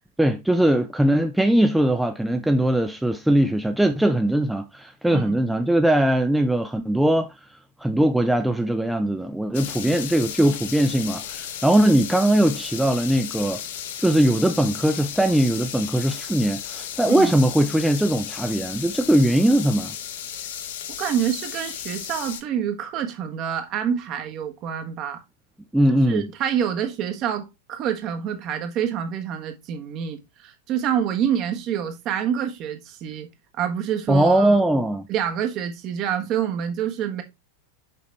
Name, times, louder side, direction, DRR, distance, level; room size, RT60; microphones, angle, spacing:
voice 1, 0.2-13.6 14.0-20.0 25.7-26.3 34.1-35.0, right 1 dB, 5° right, 0.5 m, -20 dB
sound 1, 9.5-22.4, left 9 dB, 55° left, 0.9 m, -34 dB
voice 2, 21.0-25.2 26.1-33.3 33.6-34.6 35.1-37.2, right 9 dB, 35° right, 1.3 m, -27 dB
6.7 x 5.1 x 3.2 m
figure-of-eight pair, 90°, 0 cm